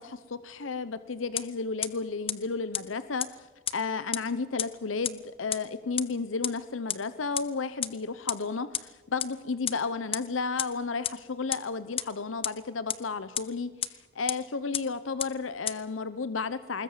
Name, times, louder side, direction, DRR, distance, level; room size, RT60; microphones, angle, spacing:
voice 1, 0.0-3.5 3.7-16.8, left 4 dB, 80° left, 14 dB, 0.8 m, -33 dB
sound 1, 1.4-1.5 1.8-1.9 2.3-2.4 2.7-2.8 3.2-3.3 3.7-3.8 4.1-4.2 4.6-4.7 5.0-5.1 5.5-5.6 6.0-6.1 6.4-6.5 6.9-7.0 7.4-7.5 7.8-7.9 8.3-8.4 8.7-8.8 9.2-9.3 9.7-9.8 10.1-10.2 10.6-10.7 11.0-11.1 11.5-11.6 12.0-12.1 12.4-12.5 12.9-13.0 13.4-13.5 13.8-13.9 14.3-14.4 14.7-14.8 15.2-15.3 15.7-15.8, left 9 dB, 30° left, 0.9 m, -28 dB
21.0 x 20.5 x 7.3 m, 1.2 s
head